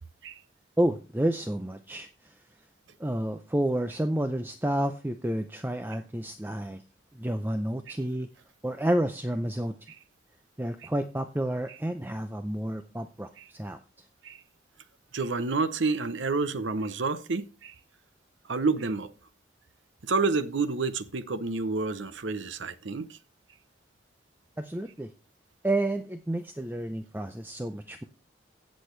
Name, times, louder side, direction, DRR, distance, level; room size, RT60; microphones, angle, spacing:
voice 1, 0.8-2.3 3.0-6.8 7.1-8.3 8.6-9.8 10.6-13.8 24.6-25.1 25.6-28.0, right 1 dB, 10° right, 0.5 m, -30 dB
voice 2, 15.1-17.7 18.5-19.1 20.0-23.2, right 3 dB, 80° right, 0.8 m, -29 dB
16.0 x 6.4 x 3.2 m
head